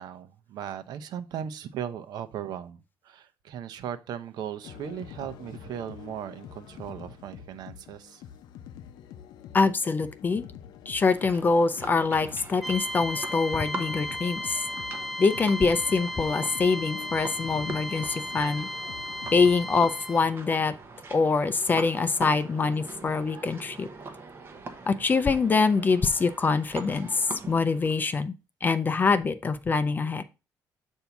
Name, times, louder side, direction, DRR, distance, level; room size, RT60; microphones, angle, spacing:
voice 1, 0.0-8.2, right 9 dB, 75° right, 0.7 m, -37 dB
sound 1, 4.6-19.7, left 10 dB, 80° left, 0.5 m, -46 dB
voice 2, 9.5-10.4 10.9-14.6 15.2-18.7 19.3-20.7 21.1-23.9 24.9-28.3 28.6-30.2, left 4 dB, 25° left, 0.4 m, -24 dB
sound 2, 11.0-28.2, right 3 dB, 30° right, 1.0 m, -42 dB
sound 3, 12.6-20.3, left 1 dB, ahead, 0.9 m, -35 dB
8.1 x 2.7 x 5.8 m
cardioid pair, 135°, 7 cm